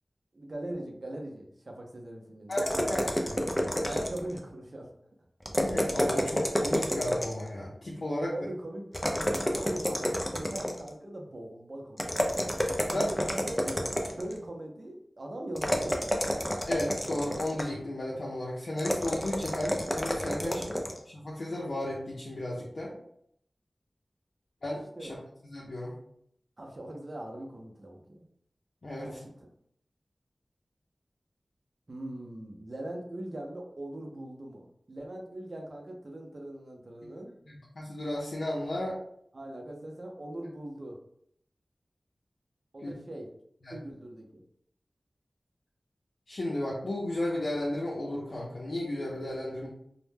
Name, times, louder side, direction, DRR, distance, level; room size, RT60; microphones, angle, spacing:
voice 1, 0.3-2.6 3.9-4.9 8.3-8.9 9.6-12.4 12.9-13.8 14.1-16.4 20.4-20.7 25.0-25.1 26.6-28.3 29.0-29.3 31.9-37.3 39.3-41.0 42.7-43.3 43.7-44.4, right 1 dB, 55° right, 1 dB, 0.5 m, -40 dB
voice 2, 2.5-3.5 3.8-4.0 5.6-8.3 12.9-13.1 16.7-20.6 21.1-22.9 24.6-25.2 25.4-26.0 28.8-29.2 37.5-39.0 42.8-42.9 43.6-43.7 46.3-49.7, left 1 dB, 70° left, -6 dB, 0.5 m, -34 dB
sound 1, 2.5-4.4 5.4-7.5 8.9-10.9 12.0-14.3 15.6-17.8 18.8-21.0, equal, 10° left, 0.4 m, -30 dB
2.1 x 2.0 x 3.2 m, 0.70 s
wide cardioid pair, 60°, 0 cm